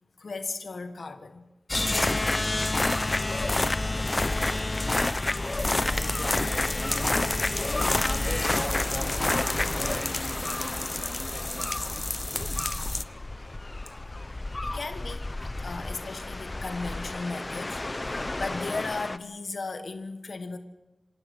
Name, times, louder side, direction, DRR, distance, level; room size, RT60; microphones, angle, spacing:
voice 1, 0.2-1.5 14.6-15.3 15.6-20.6, left 3 dB, 85° left, 8 dB, 1.3 m, -36 dB
sound 1, 1.7-19.2, left 2 dB, 35° left, 0.7 m, -29 dB
voice 2, 5.6-7.3 8.0-12.0, equal, ahead, 3 dB, 2.7 m, -40 dB
26.5 x 16.5 x 6.2 m, 0.99 s
wide cardioid pair, 75°, 0 cm